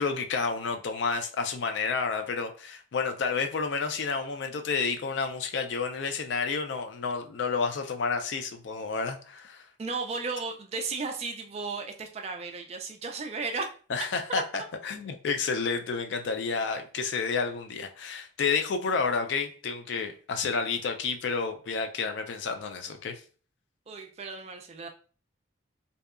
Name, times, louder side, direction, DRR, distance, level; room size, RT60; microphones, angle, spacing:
voice 1, 0.0-9.7 13.9-23.2, left 5 dB, 65° left, 6 dB, 0.4 m, -30 dB
voice 2, 9.8-13.7 14.3-14.4 23.9-24.9, right 4 dB, 35° right, 4 dB, 0.3 m, -34 dB
2.7 x 2.2 x 2.3 m, 0.40 s
head